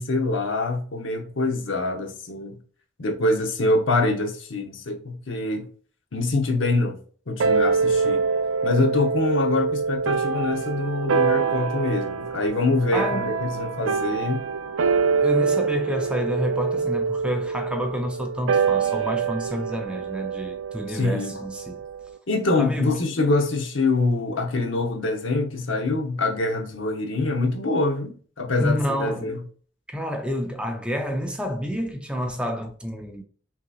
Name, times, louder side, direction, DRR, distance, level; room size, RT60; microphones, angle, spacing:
voice 1, 0.0-2.6 3.0-5.7 6.1-7.0 7.3-8.2 8.6-14.4 20.9-21.3 22.3-29.4, left 2 dB, 75° left, 0.9 m, -25 dB
sound 1, 7.4-22.1, right 5 dB, 85° right, 0.4 m, -25 dB
voice 2, 12.9-13.3 15.2-21.8 22.6-22.9 28.6-29.3 29.9-33.2, equal, 5° right, 0.4 m, -29 dB
5.7 x 2.8 x 2.4 m
head